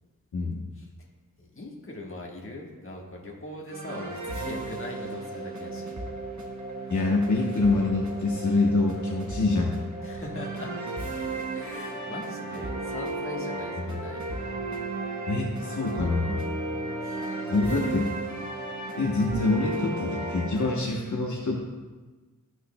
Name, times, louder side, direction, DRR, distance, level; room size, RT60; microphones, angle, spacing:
voice 1, 1.4-5.9 10.0-10.7 11.5-14.5 17.0-17.2, left 2 dB, 40° left, -2 dB, 1.4 m, -40 dB
sound 1, 3.7-20.8, right 2 dB, 60° right, 1.2 m, -34 dB
voice 2, 6.9-9.7 15.3-16.4 17.5-18.1 19.0-21.6, left 3 dB, 65° left, -2 dB, 1.0 m, -25 dB
13.5 x 6.2 x 2.2 m, 1.3 s
wide cardioid pair, 100°, 32 cm